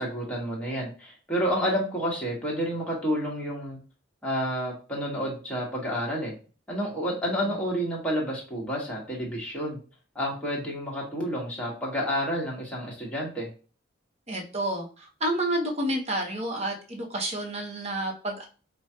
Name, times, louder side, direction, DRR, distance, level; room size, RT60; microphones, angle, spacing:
voice 1, 0.0-3.8 4.2-6.3 6.7-9.8 10.1-13.5, equal, 5° left, -4 dB, 1.3 m, -30 dB
voice 2, 14.3-18.5, right 1 dB, 35° right, 1 dB, 0.9 m, -30 dB
4.9 x 2.3 x 2.7 m, 0.36 s
head